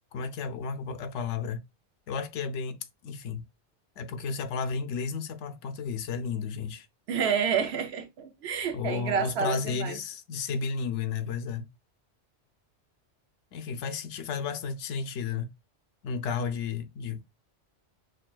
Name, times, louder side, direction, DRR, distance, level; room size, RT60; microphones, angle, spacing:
voice 1, 0.1-1.6 2.1-3.5 4.0-6.9 8.7-11.7 13.5-15.5 16.0-17.2, left 5 dB, 85° left, 0.9 m, -33 dB
voice 2, 7.1-10.0, right 7 dB, 65° right, 0.9 m, -29 dB
6.2 x 2.2 x 2.3 m
omnidirectional pair, 1.2 m